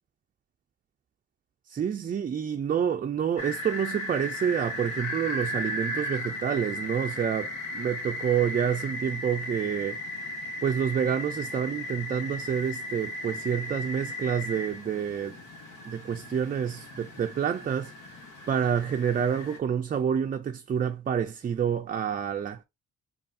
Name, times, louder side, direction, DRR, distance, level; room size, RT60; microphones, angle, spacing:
voice 1, 1.7-10.0 10.6-15.4 15.8-17.9 18.5-22.6, right 8 dB, 30° right, 0.4 m, -28 dB
sound 1, 3.4-19.6, left 1 dB, 85° left, 1.3 m, -36 dB
5.3 x 2.4 x 2.6 m
cardioid pair, 90°, 30 cm